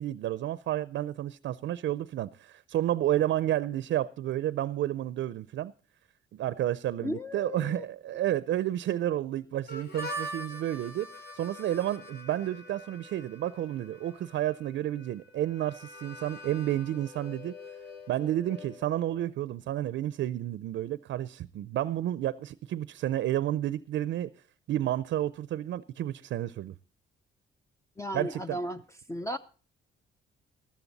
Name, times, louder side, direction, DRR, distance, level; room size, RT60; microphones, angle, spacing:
voice 1, 0.0-5.7 6.3-11.1 11.3-17.6 18.1-24.3 24.7-26.8 28.1-28.6, right 12 dB, 70° right, 0.5 m, -31 dB
voice 2, 7.0-7.8 28.0-28.8 29.1-29.4, equal, 15° left, 0.5 m, -35 dB
Harmonica, 9.7-19.3, equal, 55° left, 2.8 m, -44 dB
13.0 x 13.0 x 4.0 m
cardioid pair, 90°, 20 cm